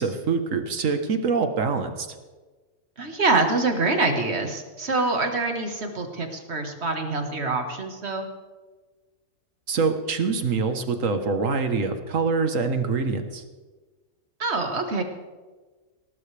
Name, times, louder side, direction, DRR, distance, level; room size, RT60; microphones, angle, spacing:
voice 1, 0.0-2.1 9.7-13.4, right 4 dB, 65° right, 7 dB, 1.6 m, -25 dB
voice 2, 3.0-8.3 14.4-15.0, right 3 dB, 50° right, 4 dB, 1.9 m, -25 dB
20.0 x 18.0 x 3.4 m, 1.3 s
omnidirectional pair, 1.5 m